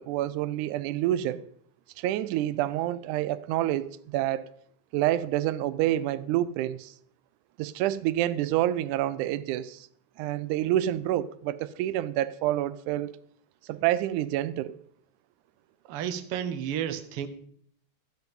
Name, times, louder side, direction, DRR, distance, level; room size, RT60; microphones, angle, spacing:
voice 1, 0.0-1.4 2.0-4.5 4.9-6.9 7.6-9.9 10.2-13.1 13.7-14.8, right 13 dB, 90° right, 2.1 m, -28 dB
voice 2, 15.9-17.3, right 9 dB, 65° right, 1.5 m, -32 dB
13.0 x 9.1 x 5.3 m
omnidirectional pair, 3.4 m